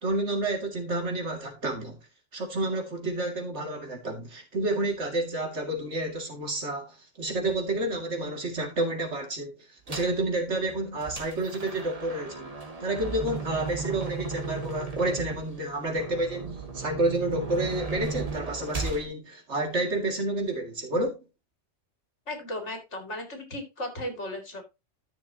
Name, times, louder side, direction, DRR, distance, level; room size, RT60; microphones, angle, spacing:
voice 1, 0.0-2.0 2.3-12.5 12.8-21.2, right 2 dB, 65° right, 2.6 m, -30 dB
sound 1, 9.9-10.2 10.7-19.1, right 4 dB, 30° right, 1.7 m, -36 dB
voice 2, 22.3-24.6, left 1 dB, 65° left, 2.8 m, -35 dB
12.5 x 6.6 x 2.8 m
omnidirectional pair, 1.3 m